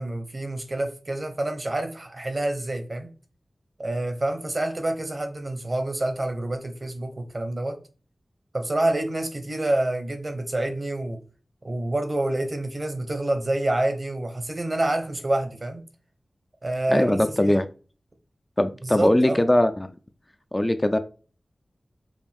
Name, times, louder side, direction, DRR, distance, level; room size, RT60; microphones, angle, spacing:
voice 1, 0.0-3.1 3.8-7.8 8.5-11.2 11.6-15.8 16.6-17.6 18.8-19.4, right 1 dB, 45° right, 5 dB, 0.9 m, -27 dB
voice 2, 16.9-17.6 18.6-19.9 20.5-21.0, left 1 dB, 20° left, 9 dB, 0.4 m, -21 dB
5.0 x 2.3 x 3.5 m, 0.36 s
wide cardioid pair, 75°, 0 cm